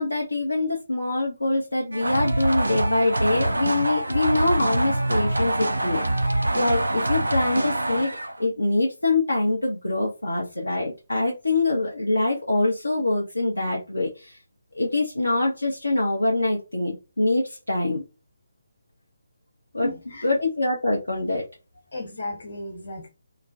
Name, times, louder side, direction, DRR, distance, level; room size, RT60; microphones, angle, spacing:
voice 1, 0.0-6.0 6.5-14.4 14.7-18.0 19.7-19.9 20.2-21.4, left 2 dB, 75° left, 0.6 m, -24 dB
sound 1, 1.9-8.4, right 1 dB, 70° right, 0.4 m, -25 dB
voice 2, 19.8-20.3 21.9-23.1, left 1 dB, 55° left, 1.1 m, -34 dB
2.3 x 2.1 x 2.6 m
figure-of-eight pair, 145°, 0 cm